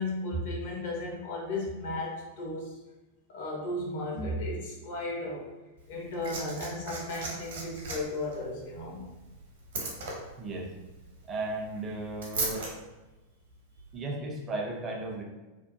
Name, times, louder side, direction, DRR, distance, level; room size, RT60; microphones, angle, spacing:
voice 1, 0.0-2.7 3.3-5.5 5.9-9.1, left 1 dB, 55° left, -2 dB, 0.7 m, -34 dB
Liquid, 5.8-12.7 13.8-13.9, right 2 dB, 60° right, 0.8 m, -39 dB
voice 2, 10.4-10.7 11.2-12.7 13.9-15.2, right 2 dB, 25° right, 0 dB, 0.5 m, -35 dB
2.8 x 2.0 x 2.7 m, 1.1 s
figure-of-eight pair, 90°, 0 cm